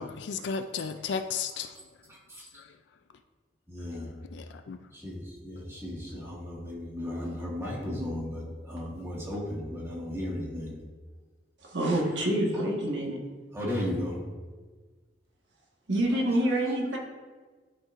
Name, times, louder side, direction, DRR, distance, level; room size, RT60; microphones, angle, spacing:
voice 1, 0.0-1.8 2.4-2.8 3.8-3.9 4.3-4.9, left 6 dB, 65° left, 8 dB, 0.3 m, -35 dB
voice 2, 3.7-4.1 5.0-10.7 12.1-12.3 12.5-12.7 13.5-14.1 16.1-16.2, left 1 dB, 15° right, -5 dB, 1.7 m, -35 dB
voice 3, 11.6-13.2 15.9-17.0, right 1 dB, 70° right, -1 dB, 1.4 m, -27 dB
11.5 x 4.4 x 2.5 m, 1.4 s
head